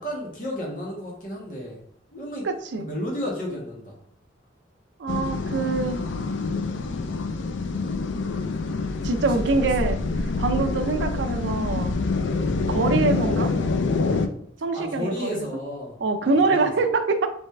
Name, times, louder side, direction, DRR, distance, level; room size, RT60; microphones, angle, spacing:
voice 1, 0.0-1.8 2.1-2.5 2.7-3.9 9.1-9.7 10.6-10.8 14.7-16.7, equal, 45° left, -3 dB, 1.4 m, -33 dB
voice 2, 2.4-2.9 5.0-6.0 9.0-10.0 10.4-11.9 12.7-13.5 14.6-15.5 16.0-17.3, right 3 dB, 80° right, 7 dB, 0.5 m, -24 dB
sound 1, 5.1-14.3, left 3 dB, 90° left, 0.4 m, -26 dB
4.0 x 3.5 x 3.2 m, 0.66 s
head